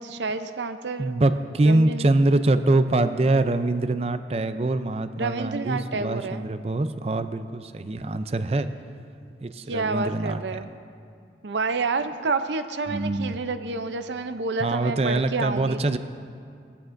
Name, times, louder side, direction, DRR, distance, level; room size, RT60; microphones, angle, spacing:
voice 1, 0.0-1.2 1.6-2.1 5.2-6.5 9.7-10.7 11.4-15.8, right 3 dB, 90° right, 9 dB, 0.6 m, -29 dB
voice 2, 1.0-8.7 9.4-10.6 12.9-13.4 14.6-16.0, right 2 dB, 35° right, 11 dB, 0.4 m, -24 dB
19.5 x 14.0 x 2.6 m, 2.4 s
head